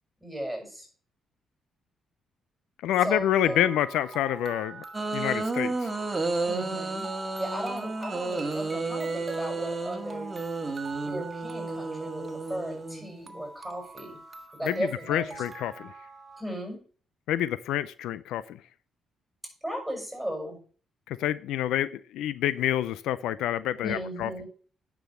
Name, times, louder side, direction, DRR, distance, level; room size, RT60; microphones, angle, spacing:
voice 1, 0.2-0.9 3.0-3.7 6.5-7.1 7.4-10.3 10.9-14.2 14.5-15.4 16.4-16.8 19.6-20.6 23.8-24.5, equal, ahead, 6.7 m, -36 dB
voice 2, 2.8-4.8 5.1-5.9 14.6-14.8 15.1-15.9 17.3-18.6 21.1-24.3, left 12 dB, 85° left, 0.5 m, -27 dB
sound 1, 3.4-16.4, right 4 dB, 35° right, 1.6 m, -45 dB
sound 2, 4.9-13.4, right 3 dB, 20° right, 1.8 m, -32 dB
10.0 x 6.2 x 6.3 m
cardioid pair, 90°, 0 cm